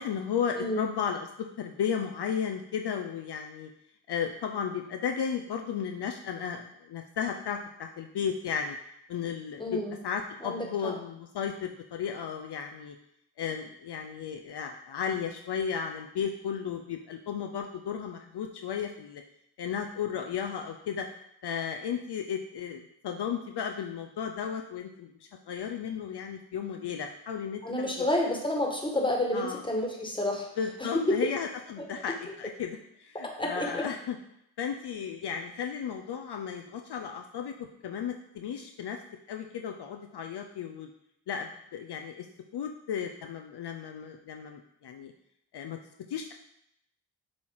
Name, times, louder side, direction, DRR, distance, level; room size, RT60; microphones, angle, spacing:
voice 1, 0.0-3.7 4.1-8.8 9.1-12.9 13.4-19.2 19.6-21.1 21.4-28.1 29.3-29.6 30.6-34.2 34.6-39.0 39.3-40.9 41.3-42.3 42.5-45.1 45.5-45.8 46.1-46.3, left 7 dB, 60° left, 4 dB, 0.6 m, -34 dB
voice 2, 0.6-0.9 9.6-10.0 10.4-10.9 27.6-30.5 31.1-31.2 33.1-33.8, left 1 dB, 10° left, 1 dB, 1.5 m, -30 dB
7.3 x 2.8 x 4.7 m, 0.77 s
cardioid pair, 50°, 45 cm